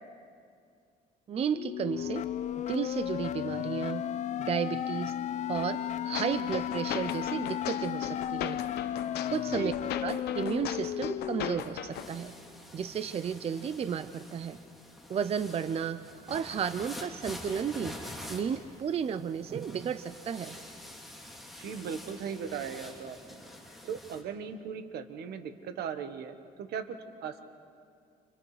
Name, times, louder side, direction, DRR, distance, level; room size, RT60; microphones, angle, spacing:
voice 1, 1.3-2.2 2.6-4.1 4.5-5.1 5.5-8.6 9.3-9.7 10.0-12.4 12.7-14.6 15.1-18.0 18.3-20.6, right 7 dB, 35° right, 12 dB, 0.6 m, -33 dB
sound 1, 1.6-11.6, left 11 dB, 45° left, 0.5 m, -34 dB
sound 2, 6.1-12.1, left 10 dB, 75° left, 1.0 m, -38 dB
sound 3, 11.9-24.2, left 1 dB, ahead, 3.1 m, -47 dB
voice 2, 21.6-23.4 23.8-27.0 27.2-27.4, right 7 dB, 70° right, 8 dB, 1.4 m, -38 dB
29.5 x 29.0 x 3.3 m, 2.3 s
cardioid pair, 110°, 17 cm